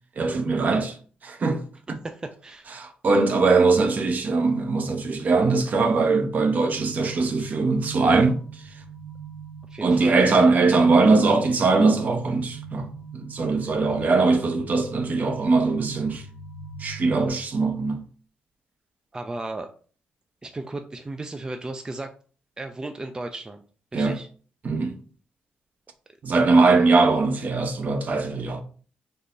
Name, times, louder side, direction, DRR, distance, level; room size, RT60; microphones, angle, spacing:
voice 1, 0.2-1.0 1.2-1.6 2.8-8.4 9.8-16.2 16.8-18.1 23.9-24.2 24.6-24.9 26.2-28.6, right 3 dB, 50° right, 0.7 m, -21 dB
voice 2, 2.0-2.7 9.7-10.1 13.7-13.8 19.1-19.7 20.4-22.1 22.6-23.6 23.9-24.3, right 2 dB, 20° right, 0.4 m, -35 dB
sound 1, 6.7-17.3, right 5 dB, 70° right, 1.5 m, -39 dB
3.7 x 2.8 x 2.6 m
supercardioid pair, 65°, 4 cm